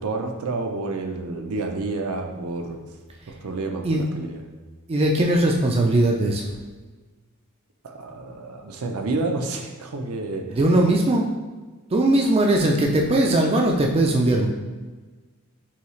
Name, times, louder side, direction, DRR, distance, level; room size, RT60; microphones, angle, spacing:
voice 1, 0.0-2.8 3.4-4.4 7.8-10.6, right 3 dB, 75° right, 3 dB, 0.5 m, -29 dB
voice 2, 4.9-6.5 10.5-11.3 11.9-14.5, right 1 dB, 25° right, 1 dB, 0.3 m, -19 dB
5.7 x 2.4 x 3.1 m, 1.3 s
head